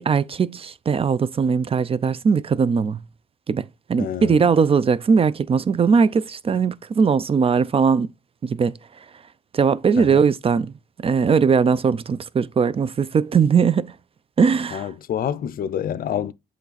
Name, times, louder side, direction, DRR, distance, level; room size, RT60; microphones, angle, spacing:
voice 1, 0.0-3.0 3.5-3.6 3.9-8.1 8.4-8.7 9.5-10.7 11.0-13.9 14.4-14.9, right 6 dB, 30° right, 0.5 m, -19 dB
voice 2, 4.0-4.4 10.0-10.2 14.7-16.3, left 9 dB, 50° left, 0.5 m, -27 dB
7.9 x 3.2 x 4.1 m
supercardioid pair, 60°, 19 cm